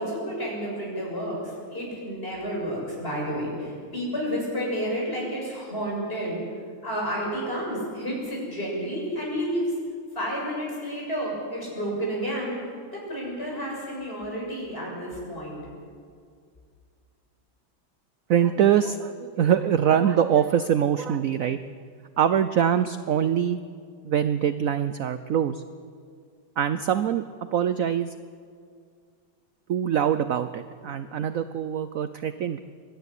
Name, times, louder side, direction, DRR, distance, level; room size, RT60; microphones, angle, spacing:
voice 1, 0.0-6.4 6.8-9.7 10.1-12.5 12.9-15.6, equal, 30° left, -3 dB, 7.2 m, -30 dB
voice 2, 18.3-21.6 22.2-23.6 24.0-25.6 26.6-27.2 27.5-28.1 29.7-32.6, right 9 dB, 70° right, 11 dB, 0.8 m, -23 dB
24.5 x 13.0 x 9.8 m, 2.2 s
omnidirectional pair, 2.1 m